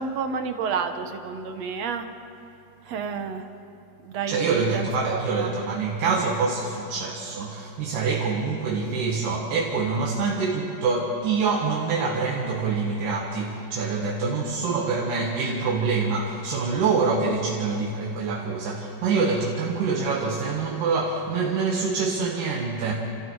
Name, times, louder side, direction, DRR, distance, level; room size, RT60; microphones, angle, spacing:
voice 1, 0.0-2.1 2.8-3.4 4.0-5.5, right 5 dB, 65° right, 7 dB, 2.0 m, -30 dB
voice 2, 4.3-22.9, right 4 dB, 90° right, -2 dB, 3.3 m, -25 dB
29.5 x 28.5 x 4.7 m, 2.7 s
omnidirectional pair, 3.7 m